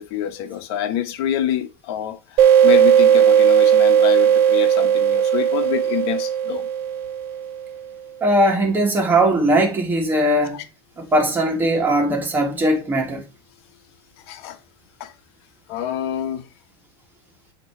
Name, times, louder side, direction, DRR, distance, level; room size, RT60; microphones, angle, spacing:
voice 1, 0.0-6.7 14.2-14.6 15.0-15.1 15.7-16.5, left 10 dB, 70° left, 1.1 m, -27 dB
sound 1, 2.4-7.7, right 9 dB, 55° right, 1.1 m, -16 dB
voice 2, 8.2-10.6 11.0-13.2, right 1 dB, 15° right, 1.5 m, -19 dB
7.9 x 3.0 x 4.3 m
supercardioid pair, 155°, 14 cm